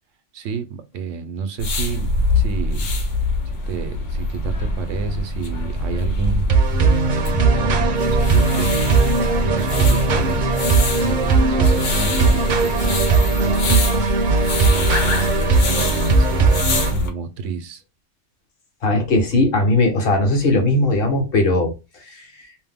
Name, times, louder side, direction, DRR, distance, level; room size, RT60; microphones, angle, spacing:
voice 1, 0.3-2.9 3.7-9.1 9.4-10.4 11.0-14.0 14.6-17.8, right 6 dB, 85° right, 0.9 m, -30 dB
sound 1, 1.6-17.1, left 2 dB, 85° left, 1.1 m, -23 dB
sound 2, 6.5-16.9, right 4 dB, 55° right, 0.6 m, -19 dB
voice 2, 18.8-22.3, left 2 dB, 55° left, 1.0 m, -19 dB
2.6 x 2.1 x 3.3 m
omnidirectional pair, 1.2 m